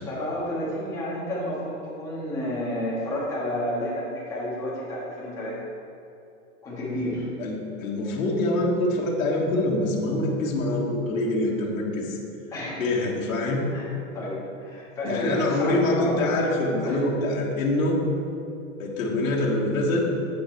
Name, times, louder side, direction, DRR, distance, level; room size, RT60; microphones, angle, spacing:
voice 1, 0.0-5.6 6.6-7.3 12.5-12.8 13.7-13.9 14.1-16.2 16.8-17.0, left 1 dB, 10° left, -9 dB, 1.4 m, -30 dB
voice 2, 7.4-12.2 12.8-13.7 15.0-18.0 18.8-20.1, left 1 dB, 65° left, -3 dB, 1.6 m, -25 dB
8.5 x 5.5 x 4.5 m, 2.7 s
supercardioid pair, 180°, 42 cm